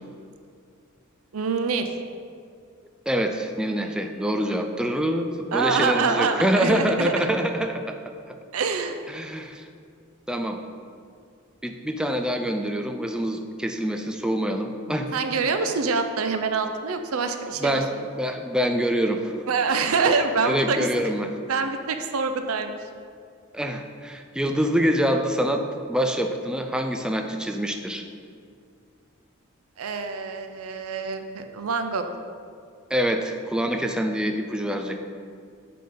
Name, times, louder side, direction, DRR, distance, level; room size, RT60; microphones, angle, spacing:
voice 1, 1.3-1.9 5.5-7.3 8.5-9.0 15.1-17.8 19.5-20.9 21.5-22.8 29.8-32.0, right 4 dB, 85° right, 7 dB, 0.6 m, -25 dB
voice 2, 3.1-8.0 9.1-9.6 10.3-10.6 11.6-15.1 17.6-19.3 20.4-21.3 23.5-25.6 25.9-28.0 32.9-35.0, equal, 5° right, 4 dB, 0.3 m, -25 dB
7.7 x 3.7 x 5.1 m, 2.3 s
head